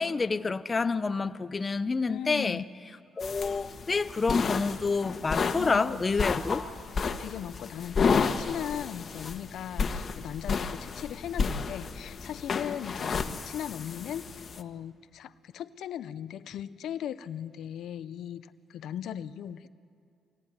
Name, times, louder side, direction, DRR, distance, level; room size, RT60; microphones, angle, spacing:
voice 1, 0.0-2.6 3.2-6.6, left 4 dB, 30° left, 13 dB, 0.7 m, -28 dB
voice 2, 2.1-2.7 5.6-6.3 7.0-19.7, left 10 dB, 75° left, 13 dB, 0.6 m, -38 dB
sound 1, 3.2-14.6, left 5 dB, 45° left, 1.3 m, -32 dB
23.5 x 17.5 x 9.6 m, 2.4 s
cardioid pair, 90°, 0 cm